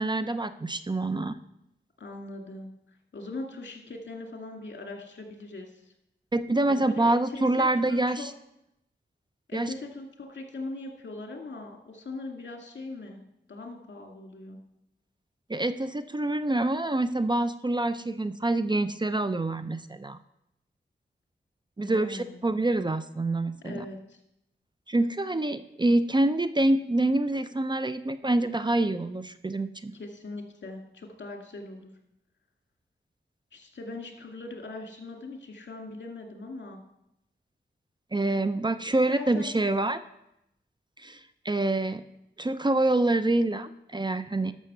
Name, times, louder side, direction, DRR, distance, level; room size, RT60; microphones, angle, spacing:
voice 1, 0.0-1.3 6.3-8.3 9.5-9.7 15.5-20.2 21.8-23.8 24.9-29.9 38.1-40.0 41.0-42.0 42.4-44.5, right 2 dB, 25° right, 11 dB, 0.5 m, -26 dB
voice 2, 2.0-2.7 3.1-5.9 6.7-8.3 9.5-13.2 13.5-14.6 21.8-22.4 23.6-24.2 29.9-31.9 33.5-36.8 39.1-39.6, left 2 dB, 70° left, 2 dB, 2.2 m, -40 dB
12.5 x 6.2 x 6.8 m, 0.82 s
wide cardioid pair, 85°, 19 cm